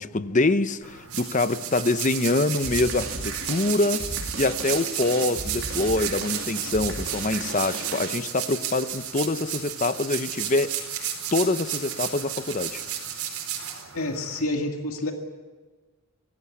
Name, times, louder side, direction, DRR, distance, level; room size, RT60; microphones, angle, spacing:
voice 1, 0.0-4.0 4.3-11.0 11.3-12.8, left 2 dB, 35° left, 0.7 m, -25 dB
sound 1, 0.8-14.4, right 9 dB, 85° right, 4.6 m, -33 dB
sound 2, 2.6-8.4, right 3 dB, 65° right, 3.2 m, -35 dB
voice 2, 13.9-15.1, left 1 dB, 80° left, 2.1 m, -28 dB
26.5 x 17.0 x 8.4 m
head